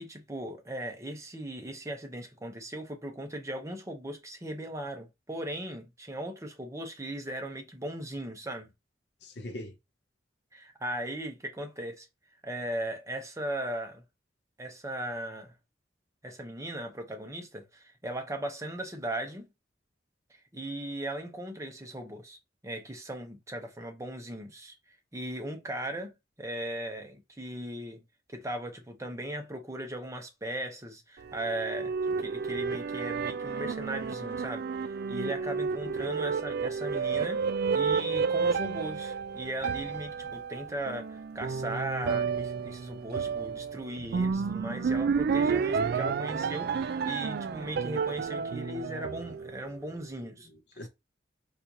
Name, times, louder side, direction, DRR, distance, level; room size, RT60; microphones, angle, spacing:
voice 1, 0.0-8.7 10.5-12.1 12.4-14.0 14.6-15.5 16.2-19.5 20.3-22.4 22.6-24.8 25.1-26.1 26.4-28.0 28.3-37.4 37.7-50.5, right 1 dB, 15° right, 0.7 m, -38 dB
voice 2, 9.2-9.7 35.8-36.1 50.2-50.9, left 1 dB, 65° left, 0.7 m, -43 dB
sound 1, 31.2-49.8, right 5 dB, 60° right, 0.3 m, -31 dB
4.2 x 2.4 x 2.7 m
head